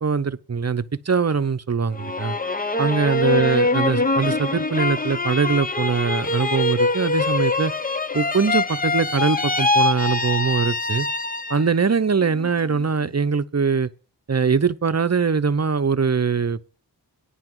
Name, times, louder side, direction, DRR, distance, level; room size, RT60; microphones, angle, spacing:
voice 1, 0.0-2.4 2.8-7.7 8.1-11.1 11.5-13.9 14.3-16.7, right 5 dB, 40° right, 0.8 m, -22 dB
sound 1, 1.9-11.8 12.2-12.9, left 2 dB, 20° left, 0.8 m, -24 dB
9.9 x 5.9 x 7.8 m
wide cardioid pair, 55°, 41 cm